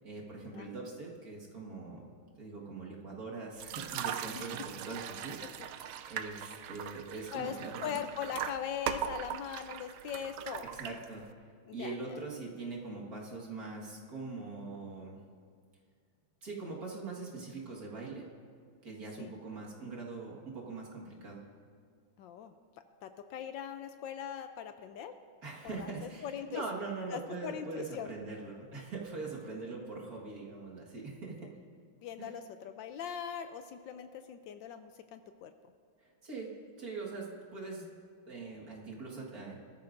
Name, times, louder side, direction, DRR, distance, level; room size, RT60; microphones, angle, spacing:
voice 1, 0.0-2.1 2.4-5.4 6.1-8.0 10.7-11.3 11.7-15.2 16.4-18.3 18.8-21.4 25.4-31.5 32.2-32.3 36.2-37.9 38.3-39.6, right 3 dB, 45° right, -3 dB, 2.0 m, -42 dB
sound 1, 3.6-11.3, right 9 dB, 80° right, 0.9 m, -40 dB
voice 2, 7.8-10.7 11.7-12.2 19.2-19.3 22.2-22.5 23.0-25.1 25.6-26.6 27.1-28.1 29.5-29.6 31.4-31.5 32.0-35.5, left 8 dB, 75° left, 9 dB, 1.1 m, -41 dB
20.0 x 13.0 x 2.6 m, 2.1 s
omnidirectional pair, 2.3 m